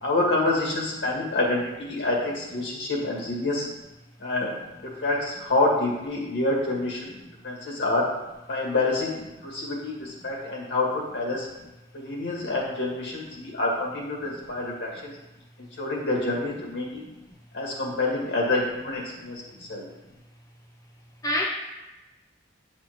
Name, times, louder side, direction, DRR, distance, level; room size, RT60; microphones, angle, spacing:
voice 1, 0.0-3.7 4.2-4.5 5.0-7.1 7.4-8.1 8.5-9.2 9.4-11.5 11.9-15.1 15.8-17.0 17.5-19.4 19.7-19.8, left 2 dB, 85° left, -3 dB, 2.0 m, -27 dB
voice 2, 7.1-7.3 14.3-14.4 17.1-17.2 19.1-19.3 19.5-19.7 21.2-21.4, equal, 20° left, -2 dB, 0.6 m, -30 dB
8.7 x 4.2 x 3.1 m, 1.0 s
head